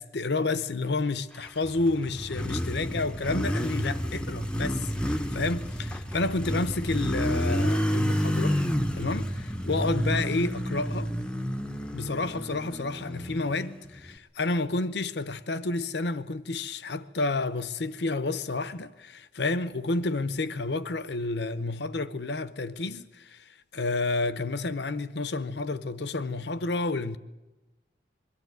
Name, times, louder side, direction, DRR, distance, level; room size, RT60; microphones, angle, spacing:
voice 1, 0.0-8.6 8.9-11.1 11.9-27.2, left 3 dB, 70° left, 0.8 m, -30 dB
Motorcycle, 1.5-14.1, equal, 5° left, 0.6 m, -30 dB
22.0 x 12.5 x 9.4 m
head